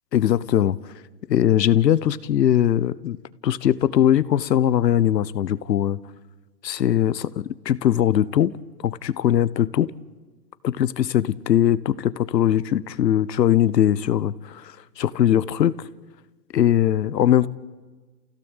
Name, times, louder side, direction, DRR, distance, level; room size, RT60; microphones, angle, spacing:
voice 1, 0.1-0.8 1.3-3.2 3.4-6.0 6.6-8.5 8.8-9.9 10.6-15.8 16.5-17.5, left 11 dB, 75° left, 1.2 m, -20 dB
28.5 x 16.5 x 8.2 m
hypercardioid pair, 150°, 50 cm